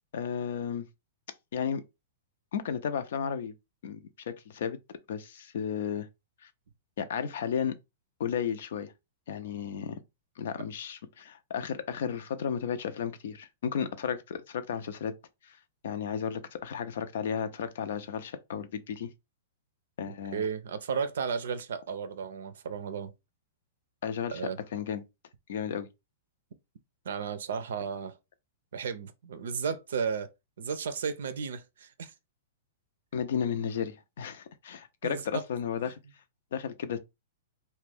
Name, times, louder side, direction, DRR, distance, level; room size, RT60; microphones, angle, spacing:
voice 1, 0.1-0.8 1.5-1.8 2.5-3.5 3.8-4.8 5.1-6.1 6.4-6.5 7.0-7.8 8.2-8.9 9.3-10.0 10.4-15.1 15.4-15.6 15.8-19.1 20.0-20.5 24.0-25.0 25.5-25.9 33.1-36.0 36.5-37.0, left 7 dB, 70° left, 0.5 m, -33 dB
voice 2, 20.3-23.1 24.3-24.6 27.1-28.1 28.7-30.3 30.6-32.1 35.0-35.4, right 6 dB, 80° right, 0.5 m, -34 dB
2.5 x 2.2 x 3.3 m
hypercardioid pair, 130°, 0 cm